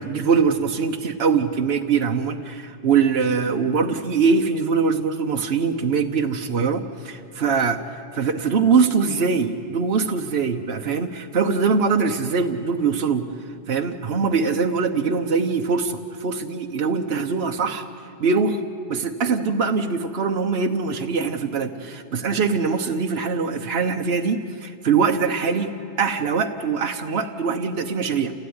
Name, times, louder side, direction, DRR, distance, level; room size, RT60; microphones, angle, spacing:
voice 1, 0.0-13.3 13.7-17.8 18.2-18.6 18.9-25.7 26.0-28.3, right 5 dB, 70° right, 4 dB, 1.3 m, -22 dB
28.5 x 16.5 x 9.6 m, 2.6 s
omnidirectional pair, 1.1 m